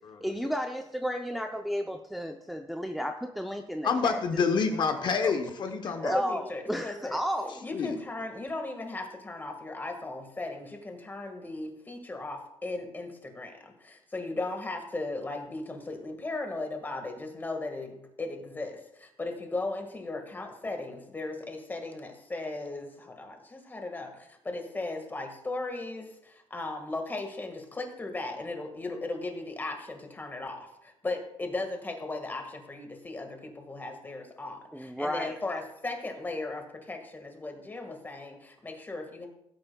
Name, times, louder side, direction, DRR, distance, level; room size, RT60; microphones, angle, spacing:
voice 1, 0.2-4.2 6.0-7.6 34.7-35.4, equal, ahead, 4 dB, 0.5 m, -33 dB
voice 2, 3.8-6.2 7.7-8.0, left 5 dB, 45° left, 6 dB, 0.9 m, -28 dB
voice 3, 5.8-7.2 7.6-39.3, left 2 dB, 20° left, 5 dB, 1.6 m, -37 dB
16.5 x 8.8 x 2.2 m, 0.82 s
cardioid pair, 135°, 11 cm